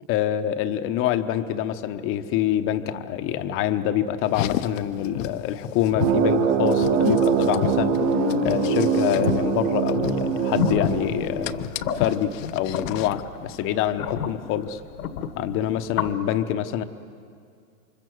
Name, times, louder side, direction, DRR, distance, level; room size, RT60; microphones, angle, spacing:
voice 1, 0.1-8.0 8.4-11.6 11.9-14.8 15.4-16.8, left 11 dB, 30° left, 9 dB, 1.0 m, -26 dB
Car, 4.3-13.2, left 12 dB, 55° left, 0.9 m, -31 dB
sound 1, 6.0-11.7, right 7 dB, 45° right, 4.3 m, -23 dB
sound 2, 10.6-16.1, left 7 dB, 80° left, 1.8 m, -31 dB
28.5 x 24.5 x 7.8 m, 2.3 s
supercardioid pair, 150°, 45 cm